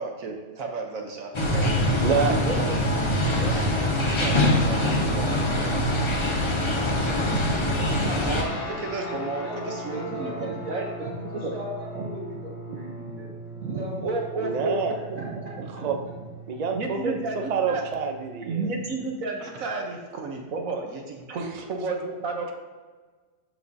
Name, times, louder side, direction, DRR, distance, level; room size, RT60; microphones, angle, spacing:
voice 1, 0.0-1.6 1.9-2.9 6.6-10.8 11.3-11.5 11.9-12.0 13.6-15.9 16.2-16.3 16.7-17.8 18.5-21.0 21.3-22.5, right 3 dB, 65° right, 2 dB, 1.3 m, -32 dB
sound 1, 1.3-8.4, left 1 dB, 30° left, 0.6 m, -23 dB
voice 2, 2.0-3.0 3.4-3.9 4.2-5.8 14.4-14.9 15.8-16.0 16.5-17.2 17.5-18.7, right 6 dB, 85° right, 4 dB, 0.3 m, -29 dB
sound 2, 8.3-18.8, equal, 85° left, 2.0 m, -40 dB
voice 3, 9.4-13.3 13.6-14.2 14.5-14.6 14.9-15.9, right 1 dB, 25° right, -4 dB, 1.8 m, -38 dB
13.0 x 4.9 x 2.7 m, 1.4 s
omnidirectional pair, 1.6 m